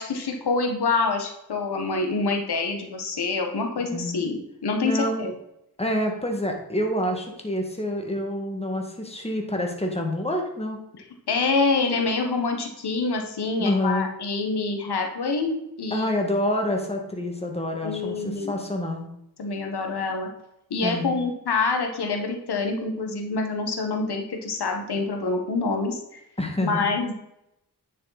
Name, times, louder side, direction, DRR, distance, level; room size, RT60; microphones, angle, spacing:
voice 1, 0.0-5.3 11.3-16.1 17.8-18.6 19.4-20.3 20.7-26.2 26.6-27.1, left 3 dB, 85° left, 4 dB, 1.5 m, -26 dB
voice 2, 4.8-5.3 5.8-10.8 13.6-14.1 15.9-19.1 20.8-21.2 26.4-26.8, left 1 dB, 15° left, 2 dB, 2.1 m, -27 dB
9.8 x 6.7 x 4.2 m, 0.82 s
cardioid pair, 70°, 38 cm